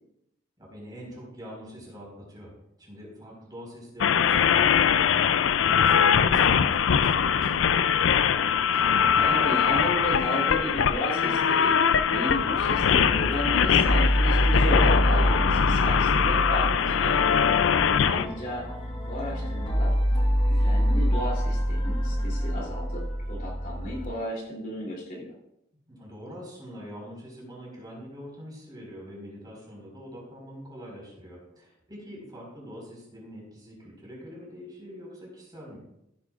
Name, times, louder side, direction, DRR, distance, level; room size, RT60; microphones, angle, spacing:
voice 1, 0.6-2.5 2.8-7.8 17.8-18.3 25.9-35.8, equal, 20° right, -3 dB, 4.6 m, -44 dB
sound 1, 4.0-18.3, left 7 dB, 75° left, 0.4 m, -22 dB
voice 2, 8.8-11.7 12.1-17.2 18.0-18.7 19.1-19.9 20.4-25.3, equal, 45° left, -4 dB, 3.1 m, -34 dB
sound 2, 12.3-24.0, equal, 25° left, 1.3 m, -26 dB
15.0 x 10.0 x 2.5 m, 0.82 s
head